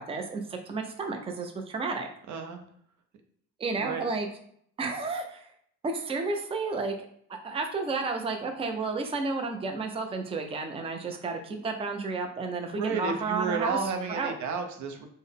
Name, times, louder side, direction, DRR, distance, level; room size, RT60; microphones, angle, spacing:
voice 1, 0.0-2.1 3.6-4.3 4.8-5.4 5.8-6.9 7.3-13.8 14.1-14.3, right 3 dB, 20° right, 4 dB, 0.4 m, -32 dB
voice 2, 2.3-2.6 3.8-4.1 12.7-15.1, right 5 dB, 70° right, 5 dB, 0.6 m, -32 dB
3.7 x 2.1 x 3.5 m, 0.66 s
cardioid pair, 90°, 30 cm